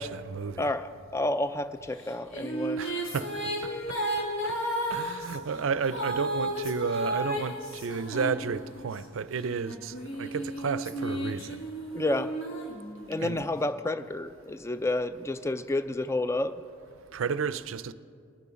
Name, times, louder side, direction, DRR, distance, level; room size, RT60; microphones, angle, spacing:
voice 1, 0.0-0.6 2.8-3.3 4.4-4.5 4.9-9.9 10.2-11.6 13.2-13.5 17.1-17.9, right 5 dB, 70° right, 0.4 m, -32 dB
voice 2, 0.6-2.8 11.9-12.3 13.1-16.6, left 2 dB, 15° left, 0.3 m, -30 dB
sound 1, 2.0-9.0 9.6-13.4, right 1 dB, 70° left, 2.0 m, -33 dB
20.0 x 6.9 x 5.1 m
head